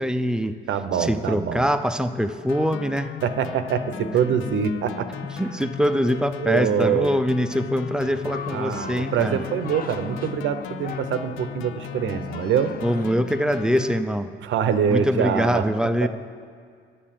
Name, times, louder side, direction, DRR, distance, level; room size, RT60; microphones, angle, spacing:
voice 1, 0.0-0.6 1.0-3.1 5.4-9.4 12.8-14.3 14.9-16.1, equal, 5° right, 9 dB, 0.5 m, -23 dB
voice 2, 0.7-1.7 3.2-5.1 6.4-7.1 8.5-12.7 14.4-15.6 16.0-16.1, right 7 dB, 75° right, 10 dB, 0.7 m, -24 dB
sound 1, 2.5-14.0, left 9 dB, 90° left, 0.4 m, -37 dB
sound 2, 8.0-13.2, left 5 dB, 45° left, 0.6 m, -40 dB
10.0 x 6.7 x 7.4 m, 2.1 s
cardioid pair, 90°, 20 cm